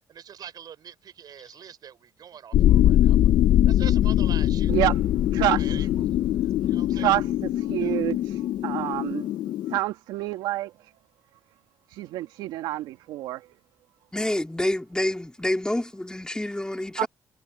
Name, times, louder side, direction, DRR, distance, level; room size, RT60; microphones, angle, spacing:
voice 1, 0.1-3.4 3.7-4.9 5.5-7.1 7.8-8.0, right 8 dB, 65° right, 4.8 m, -44 dB
sound 1, 2.5-9.8, left 12 dB, 75° left, 1.0 m, -22 dB
voice 2, 4.7-5.0 5.3-5.7 6.9-9.3 9.7-10.7 11.9-13.5 17.0-17.1, right 15 dB, 80° right, 2.2 m, -27 dB
voice 3, 14.1-17.1, left 1 dB, 10° left, 3.3 m, -28 dB
hypercardioid pair, 50°, 7 cm